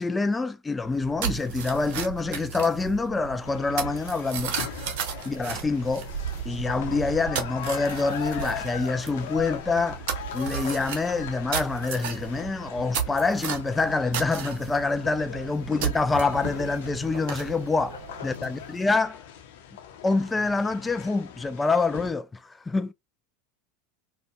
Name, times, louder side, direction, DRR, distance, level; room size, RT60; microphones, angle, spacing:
voice 1, 0.0-4.5 5.2-6.1 6.5-10.0 10.3-17.9 18.2-19.2 20.0-22.9, left 3 dB, 15° left, 0.3 m, -26 dB
sound 1, 0.8-18.8, right 7 dB, 55° right, 0.9 m, -35 dB
sound 2, 3.4-22.1, left 9 dB, 65° left, 0.7 m, -40 dB
voice 2, 4.9-5.6 15.0-15.5 17.9-18.5, left 5 dB, 85° left, 0.9 m, -48 dB
4.4 x 2.2 x 2.2 m
hypercardioid pair, 85°, 0 cm